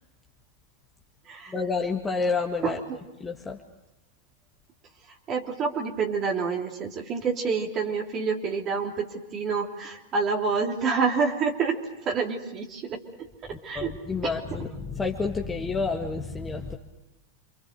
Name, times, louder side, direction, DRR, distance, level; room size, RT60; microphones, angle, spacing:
voice 1, 1.5-2.8 3.2-3.6 13.7-16.8, left 4 dB, 15° left, 1 dB, 2.0 m, -29 dB
voice 2, 2.6-3.0 5.1-13.9 14.2-14.4, right 5 dB, 30° right, 0 dB, 3.1 m, -28 dB
28.5 x 26.5 x 6.7 m, 0.98 s
figure-of-eight pair, 90°, 0 cm